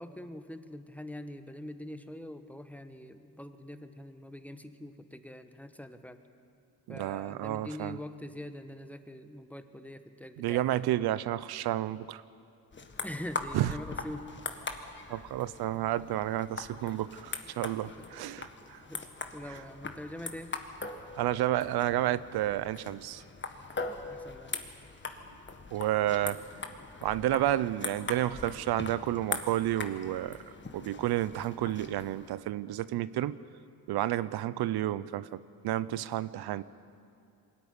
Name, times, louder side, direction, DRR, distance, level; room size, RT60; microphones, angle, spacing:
voice 1, 0.0-6.2 6.9-11.4 13.0-14.3 17.8-19.0 19.3-20.6 23.8-24.6, left 1 dB, 5° left, 9 dB, 1.2 m, -44 dB
voice 2, 6.9-8.0 10.4-12.2 13.5-13.7 15.1-18.8 21.2-23.2 25.7-26.4 27.0-30.4 30.7-33.4 33.9-36.6, right 13 dB, 90° right, 16 dB, 0.6 m, -31 dB
sound 1, 12.7-32.3, left 3 dB, 30° left, 1.6 m, -41 dB
22.5 x 13.5 x 9.7 m, 2.5 s
cardioid pair, 90°, 37 cm